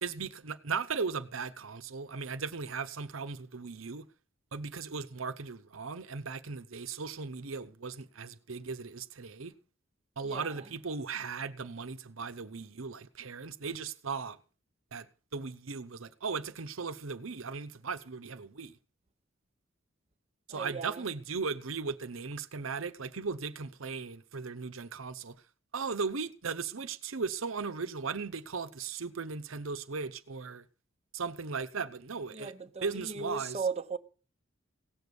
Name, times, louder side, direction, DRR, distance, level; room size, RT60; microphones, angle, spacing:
voice 1, 0.0-4.1 4.5-9.5 10.2-14.4 14.9-18.8 20.5-25.4 25.7-30.6 31.1-32.5 32.8-33.6, right 5 dB, 90° right, 0.9 m, -37 dB
voice 2, 10.2-10.7 20.5-21.0 32.3-34.0, right 5 dB, 35° right, 0.8 m, -37 dB
17.0 x 7.0 x 8.1 m
head